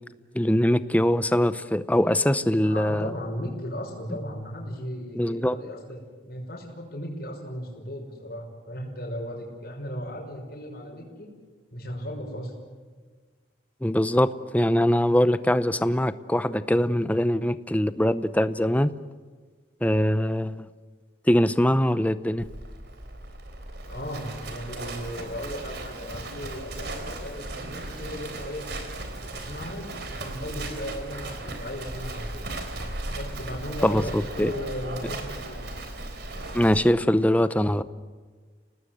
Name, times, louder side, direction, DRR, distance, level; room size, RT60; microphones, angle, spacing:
voice 1, 0.3-3.1 5.1-5.6 13.8-18.9 19.8-20.7 21.3-22.4 33.8-34.5 36.5-37.8, equal, 10° left, 0.7 m, -22 dB
voice 2, 2.6-6.0 6.3-11.3 11.7-12.5 23.9-28.6 29.2-32.4 33.1-35.7, equal, 50° left, 5.9 m, -36 dB
Livestock farm animals working animals, 22.4-36.8, right 2 dB, 55° right, 3.7 m, -36 dB
29.0 x 19.0 x 7.9 m
head